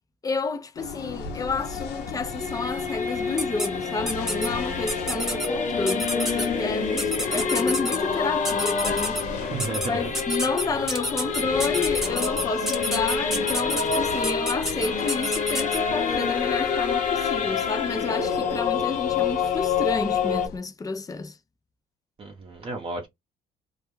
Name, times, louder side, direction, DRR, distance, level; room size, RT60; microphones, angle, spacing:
voice 1, 0.2-9.5 9.9-21.4, left 4 dB, 20° left, 0.4 m, -30 dB
sound 1, 0.8-20.6, left 4 dB, 80° left, 0.5 m, -39 dB
Singing / Musical instrument, 1.1-20.5, left 6 dB, 45° left, 0.8 m, -27 dB
sound 2, 3.4-3.7 4.1-4.5 4.9-5.5 5.9-6.5 7.0-8.0 8.5-9.2 9.6-9.9 10.1-15.8, equal, ahead, 0.8 m, -29 dB
voice 2, 9.3-10.0 22.2-23.1, right 3 dB, 35° right, 0.7 m, -33 dB
2.3 x 2.1 x 3.0 m
cardioid pair, 110°, 17 cm